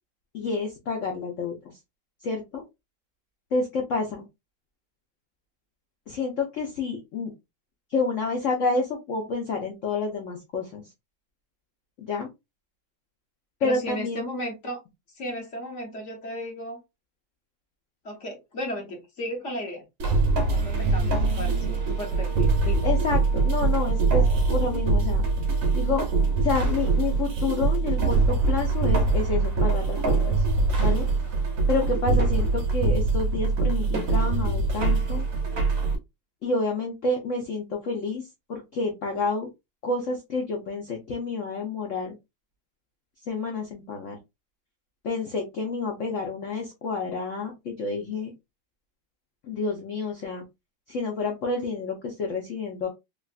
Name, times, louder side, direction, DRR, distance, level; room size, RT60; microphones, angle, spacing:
voice 1, 0.3-1.5 2.2-2.6 3.5-4.2 6.1-7.3 7.9-10.8 12.0-12.3 13.6-14.2 22.8-25.2 25.7-26.1 26.4-30.4 30.8-31.1 31.7-35.3 36.4-39.5 39.8-42.1 43.3-44.2 45.0-48.3 49.4-50.4 50.9-52.9, left 3 dB, 75° left, 1 dB, 0.6 m, -29 dB
voice 2, 13.6-14.8 15.1-16.8 18.0-19.8 20.4-22.9, equal, 45° left, 1 dB, 1.0 m, -35 dB
sound 1, 20.0-35.9, right 3 dB, 65° right, 0.8 m, -23 dB
3.4 x 2.4 x 2.4 m, 0.22 s
omnidirectional pair, 2.2 m